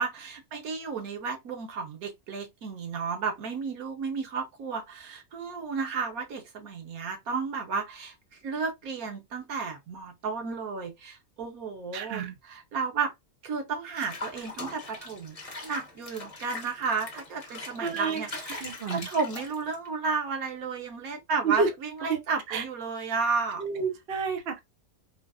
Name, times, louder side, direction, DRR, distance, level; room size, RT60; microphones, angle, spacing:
voice 1, 0.0-8.1 8.4-13.1 13.4-23.6, right 5 dB, 90° right, 1.4 m, -33 dB
voice 2, 11.9-12.3 17.8-18.2 18.6-19.1 21.4-21.7 22.1-22.2 22.5-22.6 23.6-24.6, right 5 dB, 50° right, 0.9 m, -29 dB
Water / Bathtub (filling or washing), 14.0-19.9, left 2 dB, 30° left, 1.0 m, -41 dB
3.9 x 2.3 x 2.4 m
omnidirectional pair, 1.5 m